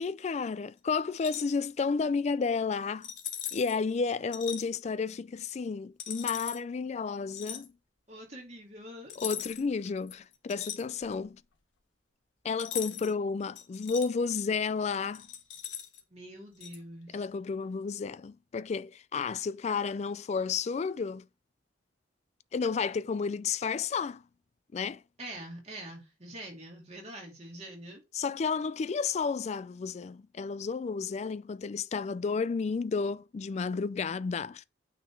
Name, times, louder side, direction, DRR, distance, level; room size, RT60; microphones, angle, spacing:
voice 1, 0.0-3.1 3.5-7.7 9.2-11.4 12.4-15.3 17.1-21.3 22.5-24.2 24.7-25.0 28.1-34.6, left 5 dB, 35° left, 0.3 m, -32 dB
sound 1, 1.1-1.6 3.0-3.8 4.3-4.6 6.0-6.6 7.3-7.7 9.1-9.7 10.1-11.3 12.6-13.1 13.6-14.1 15.1-16.0 16.6-16.8, left 9 dB, 80° left, 1.1 m, -39 dB
voice 2, 8.1-9.1 16.1-17.3 25.2-28.0, right 1 dB, 35° right, 2.5 m, -45 dB
9.1 x 3.9 x 4.6 m
head